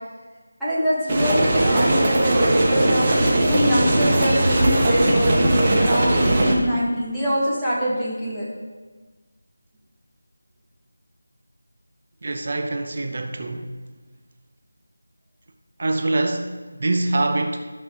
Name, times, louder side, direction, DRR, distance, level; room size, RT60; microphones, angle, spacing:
voice 1, 0.6-8.4, equal, ahead, -15 dB, 1.8 m, -23 dB
sound 1, 1.1-6.5, right 1 dB, 25° right, 1.3 m, -19 dB
voice 2, 12.2-13.7 15.8-17.7, right 2 dB, 50° right, 6 dB, 0.8 m, -24 dB
13.0 x 6.0 x 3.9 m, 1.3 s
figure-of-eight pair, 170°, 0 cm